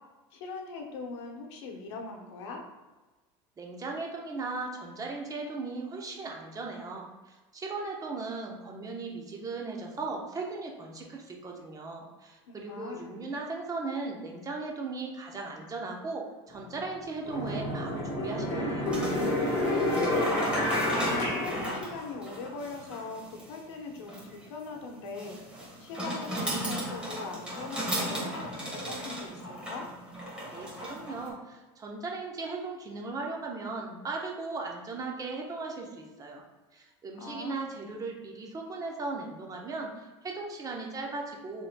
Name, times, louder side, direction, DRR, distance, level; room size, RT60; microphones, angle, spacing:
voice 1, 0.3-2.6 12.5-13.2 19.8-25.5 25.8-29.9 37.1-37.8, left 4 dB, 80° left, 2 dB, 0.9 m, -41 dB
voice 2, 3.6-18.9 30.4-36.4 36.7-41.7, right 3 dB, 25° right, 0 dB, 0.8 m, -37 dB
sound 1, 16.5-16.6 17.2-22.4, left 1 dB, 50° left, 1.3 m, -29 dB
sound 2, 18.9-31.3, equal, 5° right, 1.4 m, -36 dB
6.6 x 3.1 x 2.2 m, 1.2 s
supercardioid pair, 120°, 15 cm